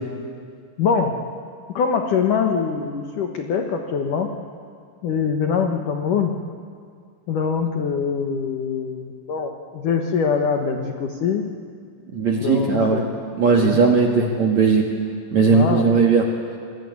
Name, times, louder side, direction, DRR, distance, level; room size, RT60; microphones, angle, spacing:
voice 1, 0.8-1.1 1.7-4.3 5.0-6.3 7.3-11.4 12.4-13.1 13.5-13.8 15.5-15.9, left 6 dB, 80° left, 4 dB, 1.8 m, -23 dB
voice 2, 12.1-13.0 13.4-14.9 15.3-16.2, right 4 dB, 50° right, 0 dB, 2.2 m, -17 dB
27.5 x 21.5 x 9.7 m, 2.2 s
omnidirectional pair, 5.9 m